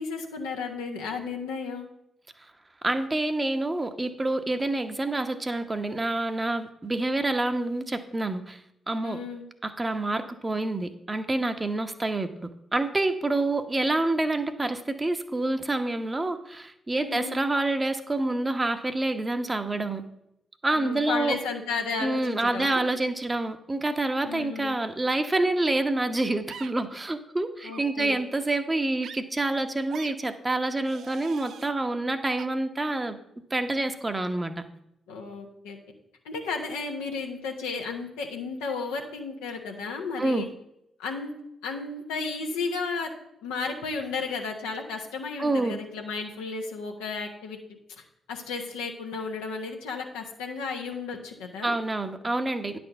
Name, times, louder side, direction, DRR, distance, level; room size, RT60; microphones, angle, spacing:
voice 1, 0.0-1.9 9.0-9.5 17.0-17.5 20.7-22.8 24.2-24.8 27.6-28.2 35.1-35.8 36.2-40.5 41.0-41.3 41.6-43.1 43.4-47.6 48.3-51.7, left 4 dB, 85° left, 1 dB, 1.1 m, -33 dB
voice 2, 2.8-8.6 8.9-9.2 9.6-20.0 20.6-21.4 22.0-33.2 33.5-34.6 40.2-40.5 45.4-45.8 51.6-52.8, right 2 dB, 25° right, 8 dB, 1.0 m, -27 dB
sound 1, 26.5-26.7 27.7-27.9 29.0-29.2 29.9-30.1 30.8-31.7 32.4-32.5, right 7 dB, 65° right, 0.4 m, -42 dB
9.5 x 4.4 x 6.8 m, 0.81 s
hypercardioid pair, 45°, 0 cm